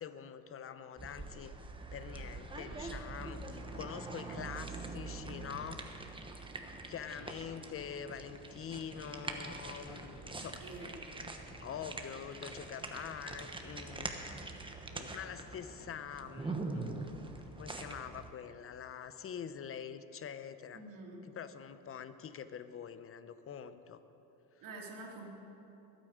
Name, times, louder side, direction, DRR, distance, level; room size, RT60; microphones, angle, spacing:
voice 1, 0.0-1.5 1.9-5.9 6.9-11.3 11.6-14.3 14.8-17.2 17.6-20.8 21.3-24.0, left 8 dB, 35° left, 12 dB, 0.8 m, -45 dB
sound 1, 1.0-18.3, right 3 dB, 15° right, 1.2 m, -44 dB
voice 2, 10.6-11.0 20.7-21.2 24.6-25.3, right 3 dB, 60° right, -1 dB, 3.0 m, -47 dB
21.0 x 9.1 x 5.1 m, 3.0 s
cardioid pair, 100°, 38 cm